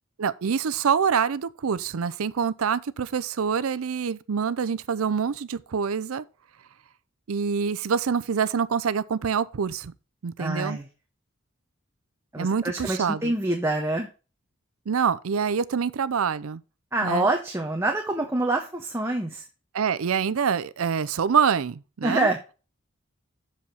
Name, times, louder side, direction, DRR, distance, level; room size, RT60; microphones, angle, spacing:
voice 1, 0.2-6.2 7.3-9.9 10.2-10.8 12.4-13.3 14.9-16.6 17.0-17.3 19.7-22.3, right 6 dB, 90° right, 0.5 m, -26 dB
voice 2, 10.4-10.9 12.3-14.1 16.9-19.4 22.0-22.4, right 2 dB, 10° right, 0.7 m, -26 dB
7.0 x 4.9 x 5.6 m
head